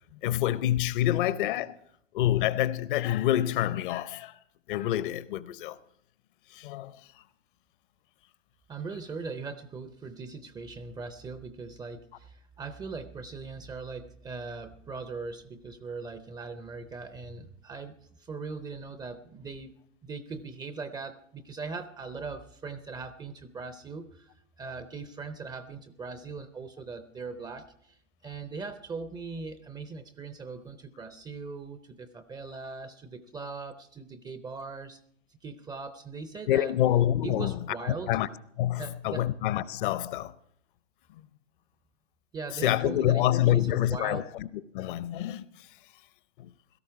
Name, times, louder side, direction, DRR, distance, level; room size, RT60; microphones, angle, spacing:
voice 1, 0.1-1.8 2.1-4.4 4.7-5.8 6.5-7.0 36.5-37.6 38.1-38.3 38.6-40.3 41.1-41.2 42.6-44.5 44.7-45.4 46.4-46.5, left 13 dB, 45° left, 0.8 m, -27 dB
voice 2, 8.7-19.8 20.0-24.3 24.6-35.0 35.4-36.7 37.2-38.2 38.8-39.3 42.3-44.3, right 4 dB, 10° right, 0.6 m, -40 dB
17.0 x 13.0 x 4.7 m
hypercardioid pair, 115°, 37 cm